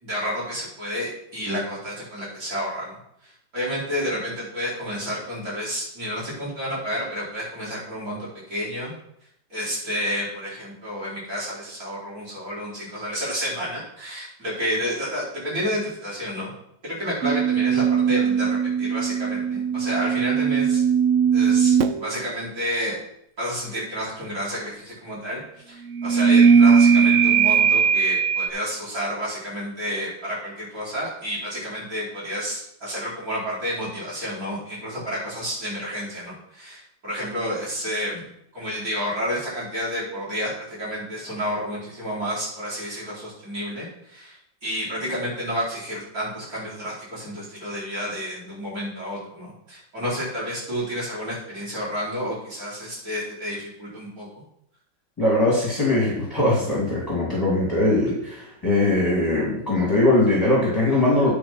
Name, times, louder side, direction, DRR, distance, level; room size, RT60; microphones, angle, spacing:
voice 1, 0.0-8.9 9.5-16.5 16.8-20.8 21.3-23.0 23.4-38.2 38.5-44.4 44.6-54.3, equal, 45° right, -8 dB, 5.1 m, -30 dB
sound 1, 17.2-22.1 25.9-28.5, right 6 dB, 85° right, 0.6 m, -19 dB
voice 2, 55.2-61.3, left 2 dB, 10° left, -6 dB, 2.8 m, -21 dB
10.5 x 4.9 x 5.9 m, 0.76 s
omnidirectional pair, 2.0 m